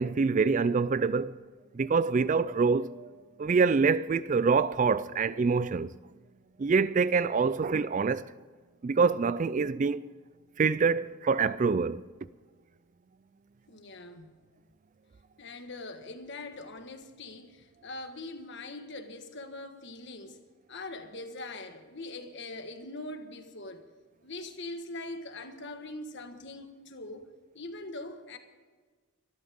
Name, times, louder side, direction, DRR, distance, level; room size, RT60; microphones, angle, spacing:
voice 1, 0.0-1.4 1.7-3.1 3.4-5.9 6.6-8.2 8.8-10.0 10.6-12.0, right 5 dB, 35° right, 0.3 m, -25 dB
voice 2, 13.7-14.4 15.4-20.4 20.7-23.9 24.2-27.3 27.5-28.4, left 2 dB, 50° left, 1.5 m, -42 dB
24.5 x 12.0 x 3.6 m
head